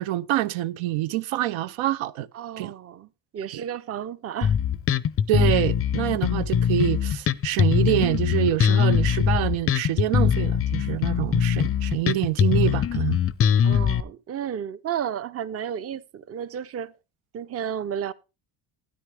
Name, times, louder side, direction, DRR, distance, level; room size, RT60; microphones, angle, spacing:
voice 1, 0.0-2.3 2.6-2.7 3.5-3.6 5.3-13.2, right 13 dB, 75° right, 0.6 m, -26 dB
voice 2, 2.3-3.1 3.3-4.5 13.6-16.9 17.3-18.1, right 9 dB, 30° right, 0.6 m, -32 dB
Bass guitar, 4.4-14.0, left 8 dB, 30° left, 0.5 m, -22 dB
12.5 x 9.8 x 3.3 m
cardioid pair, 100°, 47 cm